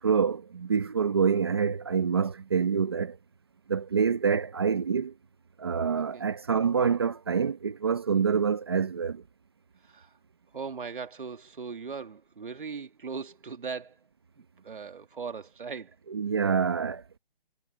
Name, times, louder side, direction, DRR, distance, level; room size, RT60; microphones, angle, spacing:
voice 1, 0.0-3.2 3.7-5.1 5.6-9.2 16.1-17.2, right 6 dB, 25° right, 1.1 m, -26 dB
voice 2, 10.5-14.0 14.4-15.9, right 5 dB, 60° right, 2.7 m, -39 dB
hypercardioid pair, 175°, 30 cm